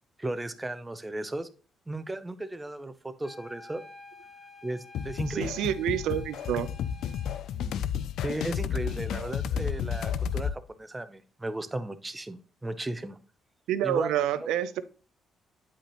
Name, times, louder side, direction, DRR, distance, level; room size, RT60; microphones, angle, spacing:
voice 1, 0.2-1.5 1.9-3.8 4.6-5.5 8.2-13.2 13.8-14.3, right 2 dB, 15° right, 10 dB, 0.6 m, -35 dB
sound 1, 3.2-7.5, left 3 dB, 15° left, 1.7 m, -50 dB
sound 2, 5.0-10.6, left 8 dB, 75° left, 0.4 m, -32 dB
voice 2, 5.3-6.7 7.5-7.7 13.7-14.8, right 11 dB, 90° right, 14 dB, 0.5 m, -28 dB
8.5 x 5.1 x 3.0 m, 0.37 s
cardioid pair, 90°, 0 cm